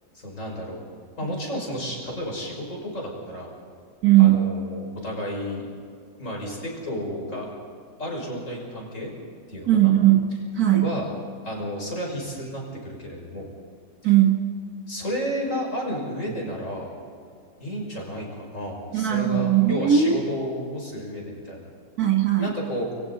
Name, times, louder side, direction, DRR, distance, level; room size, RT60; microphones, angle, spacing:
voice 1, 0.1-0.8 1.2-3.5 4.2-5.7 6.2-7.5 8.0-9.1 9.5-9.9 10.8-11.1 11.4-13.5 14.0-14.1 14.9-17.0 17.6-21.6 22.4-22.9, equal, 55° left, -1 dB, 6.3 m, -32 dB
voice 2, 4.0-4.5 9.7-10.3 10.6-10.9 14.0-14.4 18.9-20.2 22.0-22.5, right 11 dB, 85° right, 2 dB, 2.0 m, -18 dB
30.0 x 23.0 x 4.2 m, 2.4 s
omnidirectional pair, 1.6 m